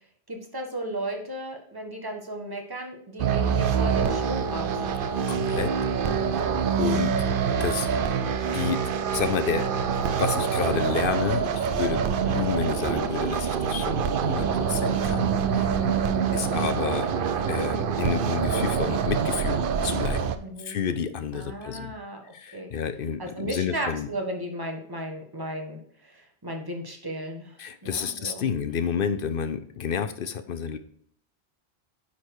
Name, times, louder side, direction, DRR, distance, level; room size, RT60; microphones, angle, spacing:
voice 1, 0.3-4.8 20.4-20.8 21.3-22.7 23.2-28.5, right 1 dB, 20° right, 3 dB, 1.4 m, -35 dB
sound 1, 3.2-20.4, right 6 dB, 60° right, 0.7 m, -25 dB
voice 2, 5.3-5.7 6.3-6.4 6.8-7.1 7.6-7.9 8.5-15.9 16.3-17.1 17.5-20.3 20.6-22.0 22.3-24.1 27.6-30.8, left 7 dB, 60° left, 11 dB, 0.8 m, -30 dB
9.8 x 4.2 x 4.7 m, 0.62 s
omnidirectional pair, 1.1 m